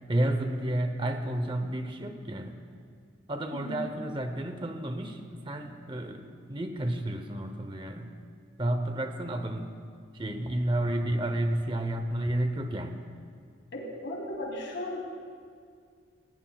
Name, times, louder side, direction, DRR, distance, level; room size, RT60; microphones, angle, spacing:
voice 1, 0.1-2.6 3.3-8.2 8.6-9.8 10.1-13.1, right 1 dB, 25° right, 7 dB, 0.7 m, -31 dB
voice 2, 13.7-15.0, left 1 dB, 70° left, -2 dB, 3.0 m, -36 dB
18.5 x 17.0 x 2.3 m, 2.2 s
head